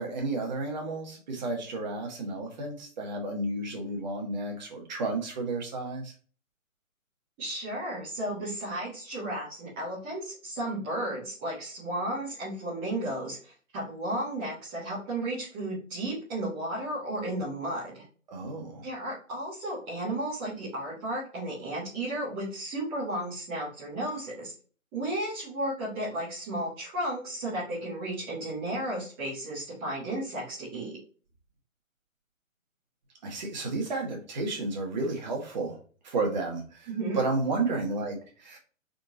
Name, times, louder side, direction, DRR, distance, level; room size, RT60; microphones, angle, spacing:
voice 1, 0.0-6.1 18.3-18.8 33.2-35.8 36.0-36.9 37.1-38.6, right 3 dB, 30° right, 1 dB, 1.4 m, -32 dB
voice 2, 7.4-18.0 18.8-24.5 24.9-30.9 36.9-37.2, right 1 dB, 10° right, -9 dB, 0.7 m, -33 dB
4.4 x 4.0 x 2.6 m, 0.40 s
figure-of-eight pair, 135°, 41 cm